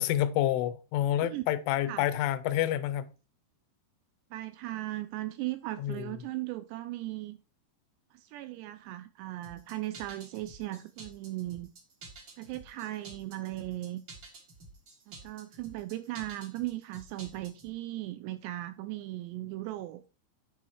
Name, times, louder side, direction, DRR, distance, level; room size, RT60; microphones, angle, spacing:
voice 1, 0.0-3.1 5.8-6.1, left 12 dB, 85° left, 3.2 m, -28 dB
voice 2, 4.3-7.4 8.1-11.7 12.4-14.0 15.1-20.0, right 16 dB, 85° right, 2.4 m, -37 dB
sound 1, 9.4-17.7, right 3 dB, 60° right, 1.3 m, -50 dB
10.5 x 4.5 x 4.6 m
omnidirectional pair, 5.4 m